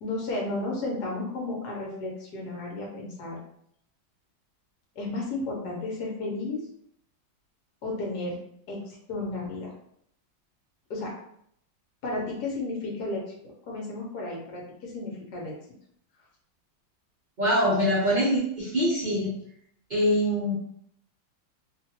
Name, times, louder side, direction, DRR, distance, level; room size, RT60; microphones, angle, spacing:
voice 1, 0.0-3.4 4.9-6.6 7.8-8.4 8.7-9.7 10.9-11.1 12.0-13.2 13.6-15.5, left 2 dB, 60° left, -2 dB, 1.3 m, -33 dB
voice 2, 17.4-19.4 19.9-20.5, equal, 55° right, -10 dB, 0.5 m, -24 dB
3.2 x 2.5 x 2.9 m, 0.70 s
omnidirectional pair, 2.2 m